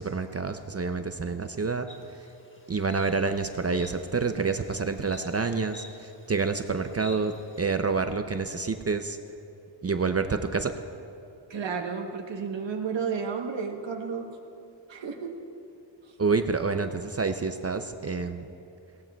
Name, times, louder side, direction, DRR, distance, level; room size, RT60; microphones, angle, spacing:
voice 1, 0.0-1.9 2.7-9.2 9.8-10.7 16.2-18.5, right 4 dB, 35° right, 8 dB, 0.5 m, -28 dB
Insect, 1.9-7.8, left 2 dB, 25° left, 1.2 m, -51 dB
voice 2, 11.5-14.3 14.9-15.4 16.1-16.2, right 6 dB, 75° right, 2 dB, 1.1 m, -32 dB
19.5 x 17.5 x 2.3 m, 2.6 s
wide cardioid pair, 115°, 44 cm